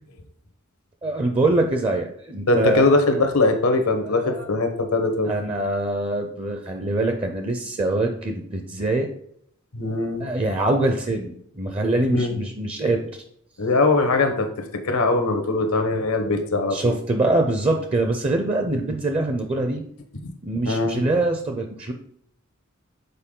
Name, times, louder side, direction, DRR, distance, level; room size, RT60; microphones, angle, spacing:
voice 1, 1.0-3.1 4.0-4.5 5.2-9.1 10.2-13.2 16.3-16.4 16.7-19.8 20.4-21.9, right 2 dB, 25° right, 4 dB, 0.5 m, -24 dB
voice 2, 2.5-5.3 9.7-10.3 12.1-12.3 13.6-16.9 20.2-20.3 20.6-21.0, left 3 dB, 85° left, 6 dB, 1.0 m, -21 dB
6.8 x 4.3 x 3.7 m, 0.68 s
head